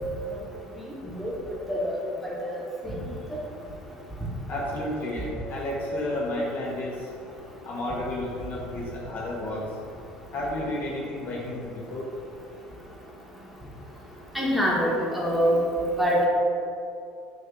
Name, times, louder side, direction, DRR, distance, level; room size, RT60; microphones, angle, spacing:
voice 1, 4.5-6.9 7.7-9.6 10.3-12.0, left 1 dB, 45° left, -3 dB, 0.6 m, -31 dB
voice 2, 14.3-15.6 16.0-16.2, equal, ahead, -5 dB, 0.9 m, -24 dB
3.2 x 2.6 x 3.6 m, 2.5 s
hypercardioid pair, 65°, 4 cm